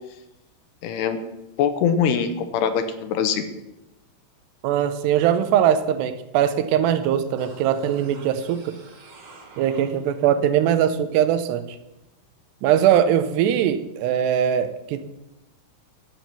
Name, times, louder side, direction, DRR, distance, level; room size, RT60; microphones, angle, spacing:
voice 1, 0.8-1.2 1.6-3.4, left 7 dB, 80° left, 9 dB, 2.9 m, -23 dB
voice 2, 4.6-8.7 9.6-11.8 12.6-15.0, right 10 dB, 85° right, 11 dB, 2.8 m, -21 dB
sound 1, 7.4-10.4 10.7-10.8, right 3 dB, 45° right, 1.9 m, -46 dB
12.5 x 6.1 x 8.3 m, 0.95 s
omnidirectional pair, 4.9 m